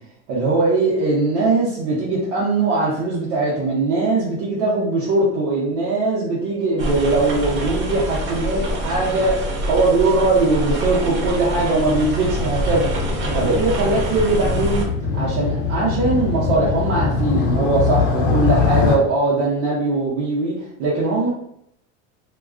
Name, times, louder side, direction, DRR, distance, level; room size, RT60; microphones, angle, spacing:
voice 1, 0.3-9.4 9.7-12.9 13.3-14.8 15.1-21.3, right 3 dB, 85° right, -7 dB, 0.8 m, -20 dB
sound 1, 6.8-14.9, right 1 dB, 35° right, 0.7 m, -25 dB
Motorcycle, 11.4-19.0, left 5 dB, 55° left, 0.6 m, -23 dB
2.3 x 2.3 x 2.3 m, 0.74 s
supercardioid pair, 105°, 35 cm